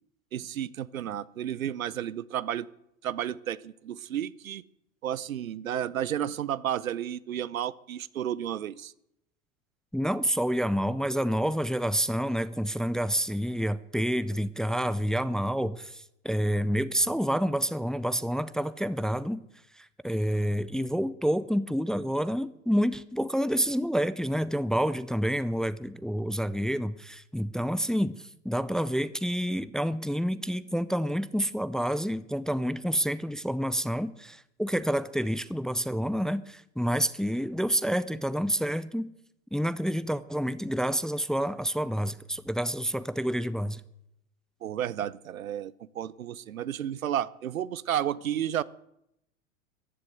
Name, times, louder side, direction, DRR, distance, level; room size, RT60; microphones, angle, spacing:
voice 1, 0.3-2.7 3.0-4.6 5.0-8.9 44.6-48.6, right 10 dB, 90° right, 19 dB, 0.7 m, -32 dB
voice 2, 9.9-19.4 19.8-39.1 39.5-43.8, equal, ahead, 15 dB, 0.5 m, -28 dB
15.0 x 10.5 x 8.0 m, 0.80 s
hypercardioid pair, 95°, 40 cm